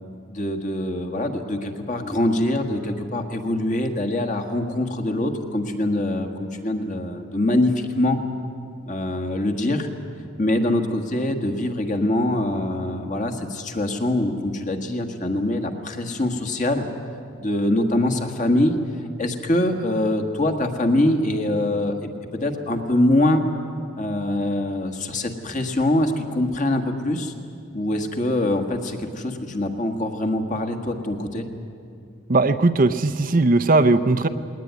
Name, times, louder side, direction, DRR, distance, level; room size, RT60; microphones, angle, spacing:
voice 1, 0.3-8.2 8.9-9.9 10.4-16.8 17.4-18.8 19.2-22.0 22.4-23.4 23.9-27.3 27.7-31.5, left 1 dB, 40° left, 5 dB, 1.7 m, -23 dB
voice 2, 32.3-34.3, right 2 dB, 40° right, 9 dB, 0.6 m, -18 dB
20.0 x 19.0 x 9.5 m, 2.4 s
head